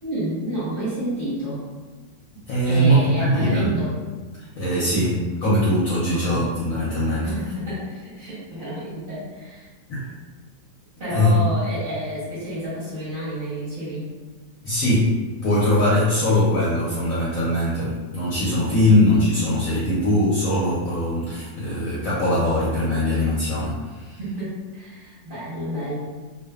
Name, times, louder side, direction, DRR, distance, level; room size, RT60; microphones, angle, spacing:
voice 1, 0.0-1.6 2.6-4.0 4.8-5.0 6.1-6.5 7.2-9.7 11.0-14.1 24.2-25.9, right 1 dB, 40° right, -11 dB, 0.9 m, -30 dB
voice 2, 2.5-3.8 4.4-7.3 9.9-10.1 11.1-11.6 14.6-24.2, left 1 dB, 65° left, -8 dB, 0.9 m, -21 dB
2.6 x 2.3 x 2.3 m, 1.3 s
omnidirectional pair, 1.8 m